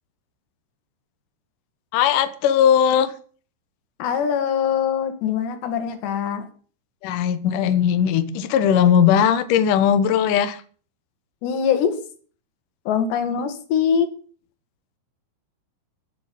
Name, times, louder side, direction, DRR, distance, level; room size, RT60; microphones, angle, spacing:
voice 1, 1.9-3.1 7.0-10.6, left 8 dB, 90° left, 11 dB, 1.8 m, -18 dB
voice 2, 4.0-6.5 11.4-12.0 12.9-14.1, left 7 dB, 65° left, 8 dB, 3.8 m, -23 dB
15.5 x 7.2 x 9.4 m, 0.43 s
omnidirectional pair, 5.8 m